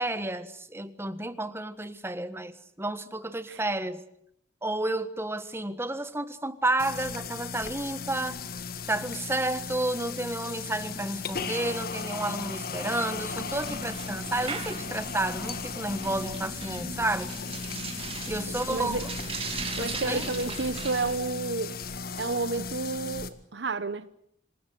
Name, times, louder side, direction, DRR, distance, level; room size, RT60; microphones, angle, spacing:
voice 1, 0.0-4.0 4.6-8.3 8.9-17.3 18.2-19.0 19.8-20.3, right 2 dB, 15° right, 1.5 m, -31 dB
sound 1, 6.8-23.3, left 5 dB, 55° left, 1.9 m, -36 dB
sound 2, 13.2-21.2, right 4 dB, 35° right, 3.3 m, -38 dB
voice 2, 18.7-19.1 19.8-21.8 22.2-24.1, right 3 dB, 75° right, 0.9 m, -31 dB
27.0 x 18.5 x 9.4 m
head